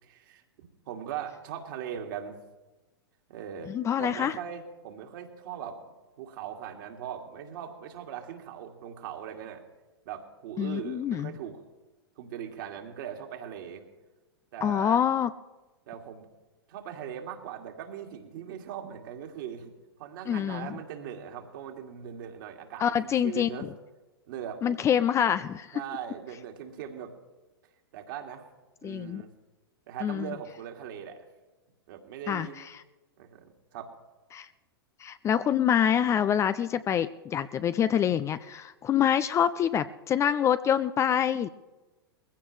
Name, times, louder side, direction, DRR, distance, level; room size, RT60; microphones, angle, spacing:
voice 1, 0.0-2.4 3.3-3.7 4.0-5.8 6.2-9.6 10.1-11.6 12.2-13.8 14.5-15.0 15.9-16.3 16.7-19.7 20.0-23.7 24.3-24.8 25.7-27.1 27.9-28.4 28.8-29.3 29.9-31.2 31.9-32.6 33.2-33.9, right 9 dB, 55° right, 2 dB, 2.4 m, -40 dB
voice 2, 3.7-4.3 10.6-11.3 14.6-15.3 20.3-20.7 22.8-23.7 24.6-25.8 28.8-29.2 30.0-30.3 32.3-32.5 34.3-34.5 35.0-41.5, left 9 dB, 20° left, 13 dB, 0.5 m, -26 dB
21.5 x 16.0 x 3.3 m, 1.1 s
figure-of-eight pair, 100°, 13 cm